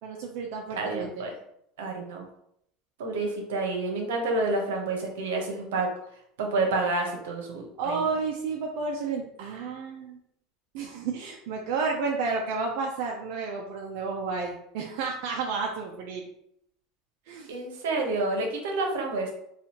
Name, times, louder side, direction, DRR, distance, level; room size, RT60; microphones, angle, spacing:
voice 1, 0.0-1.2 7.8-10.2 10.7-16.2 17.3-17.5, right 4 dB, 70° right, 0 dB, 0.5 m, -31 dB
voice 2, 0.7-1.3 1.8-2.2 3.0-5.9 6.4-8.1 17.5-19.3, right 2 dB, 90° right, 2 dB, 0.9 m, -29 dB
4.1 x 2.4 x 2.9 m, 0.74 s
supercardioid pair, 110°, 0 cm